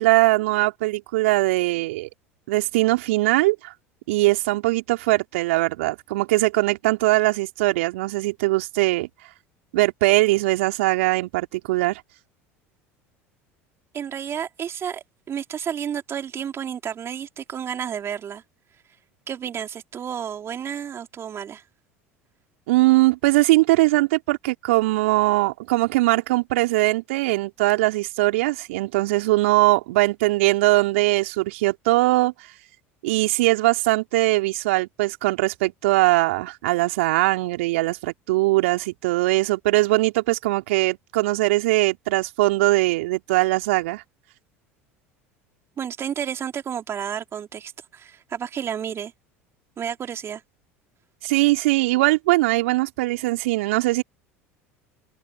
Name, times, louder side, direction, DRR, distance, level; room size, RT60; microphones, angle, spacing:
voice 1, 0.0-2.1 2.5-3.7 4.1-9.1 9.7-12.0 22.7-32.3 33.0-44.0 51.2-54.0, right 20 dB, 70° right, 3.5 m, -21 dB
voice 2, 13.9-18.4 19.3-21.6 45.8-49.1 49.8-50.4, right 8 dB, 35° right, 3.4 m, -31 dB
hypercardioid pair, 70°, 7 cm